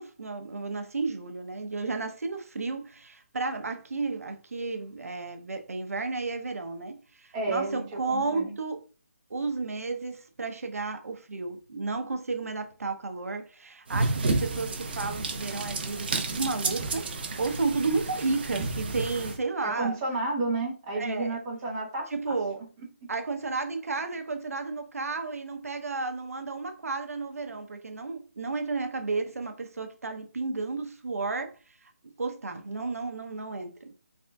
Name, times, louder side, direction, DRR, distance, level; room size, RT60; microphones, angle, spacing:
voice 1, 0.0-8.8 9.3-20.0 20.9-21.4 22.1-22.6 23.1-31.5 31.8-31.9 32.2-33.9, right 3 dB, 80° right, 0.7 m, -32 dB
voice 2, 7.3-8.5 19.6-22.3, right 2 dB, 20° right, 1.1 m, -31 dB
sound 1, 13.9-19.4, right 3 dB, 40° right, 0.6 m, -31 dB
3.7 x 3.4 x 2.3 m
hypercardioid pair, 165°, 8 cm